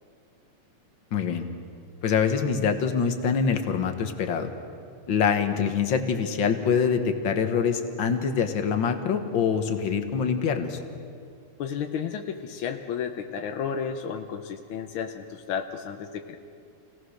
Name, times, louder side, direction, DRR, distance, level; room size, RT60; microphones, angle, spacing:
voice 1, 1.1-1.4 2.0-4.5 5.1-10.8, left 6 dB, 50° left, 7 dB, 1.6 m, -25 dB
voice 2, 11.6-16.4, left 7 dB, 75° left, 5 dB, 1.2 m, -32 dB
28.0 x 18.0 x 6.5 m, 2.4 s
omnidirectional pair, 3.3 m